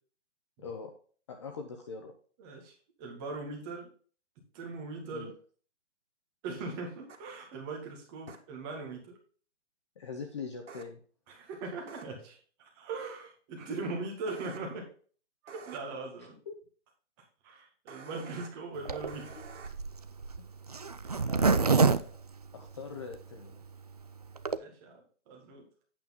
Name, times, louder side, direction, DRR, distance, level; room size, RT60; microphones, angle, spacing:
voice 1, 0.6-0.9 1.3-2.1 5.0-5.3 10.0-11.0 16.5-16.6 21.3-22.2 22.5-23.6, left 5 dB, 25° left, 4 dB, 0.8 m, -42 dB
voice 2, 2.4-2.7 3.0-3.9 4.5-5.3 6.4-9.2 11.3-14.8 15.4-16.4 17.4-19.3 21.0-21.3 24.5-25.6, right 3 dB, 20° right, 1 dB, 2.0 m, -40 dB
sound 1, 7.1-7.2 8.3-8.4 10.7-10.8 11.9-12.0 14.3-14.6 15.5-15.8 17.9-18.5 19.1-19.7, right 5 dB, 85° right, 2.1 m, -48 dB
Zipper (clothing), 18.8-23.2 23.6-23.7 23.9-24.0 24.2-24.6, right 4 dB, 35° right, 0.4 m, -27 dB
8.8 x 6.9 x 3.7 m, 0.42 s
hypercardioid pair, 165°, 35 cm